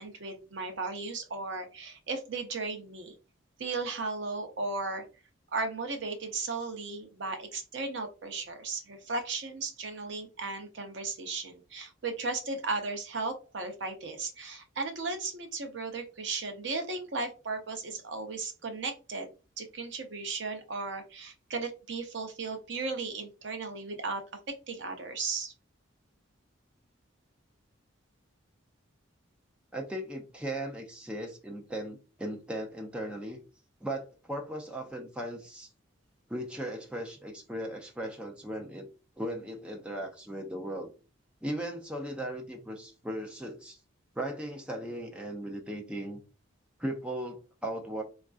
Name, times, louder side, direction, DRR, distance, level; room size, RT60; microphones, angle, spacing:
voice 1, 0.0-3.1 3.6-5.0 5.5-19.3 19.6-25.5, right 3 dB, 60° right, 5 dB, 0.6 m, -36 dB
voice 2, 29.7-33.4 33.8-35.7 36.3-38.9 39.2-40.9 41.4-43.8 44.2-46.2 46.8-48.0, right 1 dB, 5° right, 1 dB, 0.4 m, -37 dB
3.5 x 2.4 x 2.3 m, 0.33 s
head